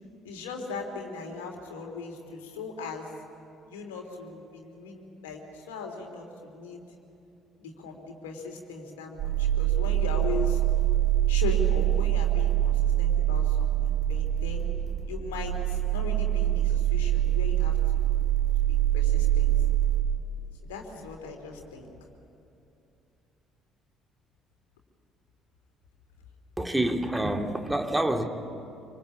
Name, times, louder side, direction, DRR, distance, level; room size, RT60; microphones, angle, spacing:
voice 1, 0.2-3.1 3.7-6.8 7.6-10.6 11.3-14.7 15.1-18.0 18.3-19.5 20.6-21.9, left 4 dB, 70° left, 3 dB, 3.4 m, -38 dB
sound 1, 9.2-20.0, right 12 dB, 50° right, 3.0 m, -24 dB
voice 2, 26.6-28.2, right 1 dB, 10° right, 4 dB, 2.3 m, -27 dB
26.0 x 25.5 x 8.6 m, 2.7 s
figure-of-eight pair, 50°, 0 cm